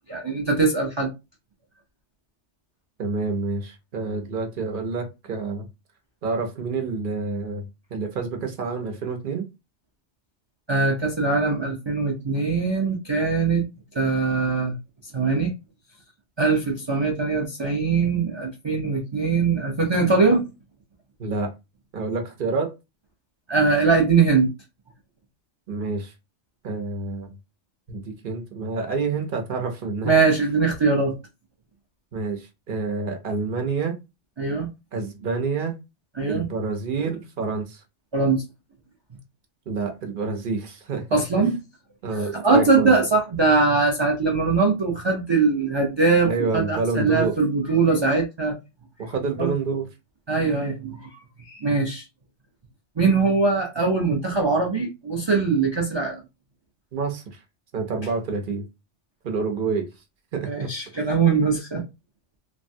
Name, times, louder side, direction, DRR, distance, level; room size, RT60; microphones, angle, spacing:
voice 1, 0.1-1.1 10.7-13.6 13.9-14.8 15.1-15.5 16.4-20.5 23.5-24.5 30.0-31.2 34.4-34.7 36.2-36.4 38.1-38.4 41.1-41.5 42.3-48.5 49.4-49.5 50.3-51.1 51.4-52.0 53.0-56.2 60.5-61.8, right 4 dB, 35° right, 0.4 m, -21 dB
voice 2, 3.0-5.7 6.2-9.4 21.2-21.5 21.9-22.7 25.7-26.1 26.6-27.3 27.9-30.1 32.1-34.0 34.9-35.7 36.3-37.8 39.7-41.0 41.4-41.5 42.0-43.0 46.2-47.3 49.0-49.9 56.9-57.4 57.7-58.7 59.2-59.9 60.3-60.7, right 4 dB, 50° right, 0.8 m, -28 dB
3.2 x 2.1 x 2.6 m
omnidirectional pair, 1.2 m